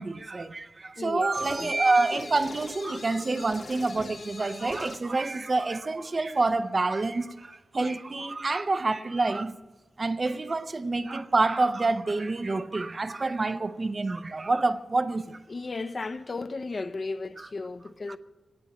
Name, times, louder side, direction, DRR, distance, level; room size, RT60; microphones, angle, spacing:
voice 1, 0.0-9.5 10.0-15.4 18.1-18.2, right 3 dB, 30° right, 0.6 m, -27 dB
voice 2, 1.0-1.7 15.5-18.2, left 3 dB, 40° left, 0.7 m, -35 dB
sound 1, 1.3-5.1, left 2 dB, 65° left, 2.0 m, -41 dB
25.5 x 18.0 x 3.1 m
wide cardioid pair, 170°, 0 cm